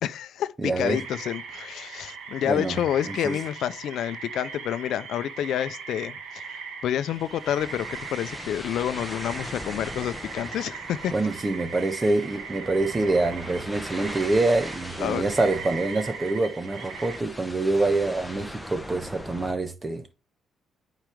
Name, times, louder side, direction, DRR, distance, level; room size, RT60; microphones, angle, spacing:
voice 1, 0.0-11.1 15.0-15.2, left 10 dB, 75° left, 0.5 m, -29 dB
voice 2, 0.6-1.0 2.4-2.8 3.0-3.4 11.1-20.1, right 2 dB, 25° right, 1.2 m, -26 dB
sound 1, 0.8-17.2, right 6 dB, 80° right, 1.7 m, -39 dB
sound 2, 7.1-19.5, left 1 dB, ahead, 1.2 m, -40 dB
9.0 x 5.1 x 3.5 m
cardioid pair, 90°, 0 cm